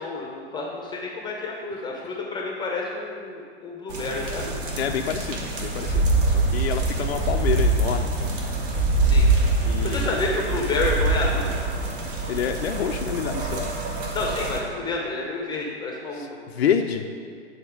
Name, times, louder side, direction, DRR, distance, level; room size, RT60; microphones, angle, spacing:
voice 1, 0.0-4.5 9.1-9.3 9.8-11.5 14.1-16.4, left 3 dB, 10° left, -1 dB, 0.8 m, -29 dB
sound 1, 3.9-14.6, right 2 dB, 50° right, 1.2 m, -31 dB
voice 2, 4.8-6.0 6.3-8.3 9.7-10.2 12.3-13.7 16.1-17.1, left 8 dB, 60° left, 4 dB, 0.5 m, -28 dB
sound 2, 5.8-11.9, right 2 dB, 15° right, 1.1 m, -23 dB
8.7 x 4.3 x 4.9 m, 2.2 s
figure-of-eight pair, 110°, 35 cm